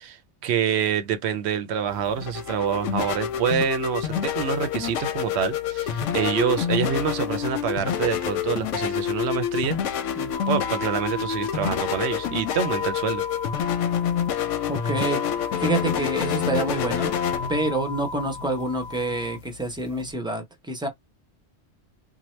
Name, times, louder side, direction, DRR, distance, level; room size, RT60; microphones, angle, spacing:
voice 1, 0.0-9.8 10.5-13.2, right 8 dB, 70° right, 0.8 m, -26 dB
sound 1, 1.9-20.1, left 9 dB, 90° left, 0.9 m, -28 dB
sound 2, 10.3-19.4, left 3 dB, 55° left, 0.6 m, -36 dB
voice 2, 14.7-15.2 15.6-17.1 17.5-20.9, right 2 dB, 5° right, 0.5 m, -27 dB
2.8 x 2.1 x 3.1 m
omnidirectional pair, 1.2 m